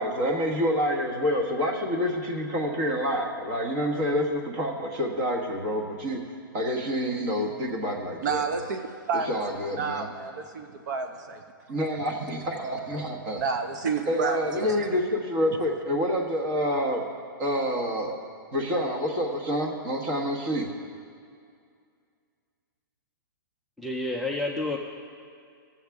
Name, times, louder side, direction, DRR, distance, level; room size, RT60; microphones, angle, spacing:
voice 1, 0.0-6.2 6.5-8.4 9.3-10.1 11.7-13.4 14.1-17.1 17.4-18.2 18.5-20.7, equal, 30° right, 1 dB, 1.3 m, -27 dB
voice 2, 8.2-9.3 9.8-11.4 13.3-14.8, right 5 dB, 55° right, 6 dB, 0.7 m, -30 dB
voice 3, 23.8-24.8, left 2 dB, ahead, -1 dB, 0.3 m, -29 dB
16.5 x 7.3 x 3.5 m, 2.3 s
hypercardioid pair, 160°, 12 cm